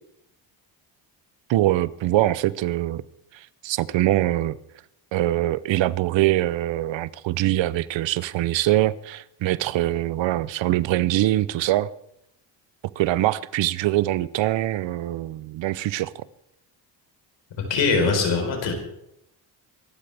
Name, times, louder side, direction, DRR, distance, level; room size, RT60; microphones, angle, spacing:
voice 1, 1.5-3.0 3.3-4.6 5.1-11.9 13.0-16.3, right 15 dB, 75° right, 0.7 m, -23 dB
voice 2, 17.7-18.7, left 4 dB, 75° left, 4.4 m, -21 dB
23.5 x 12.0 x 3.5 m
cardioid pair, 85°, 45 cm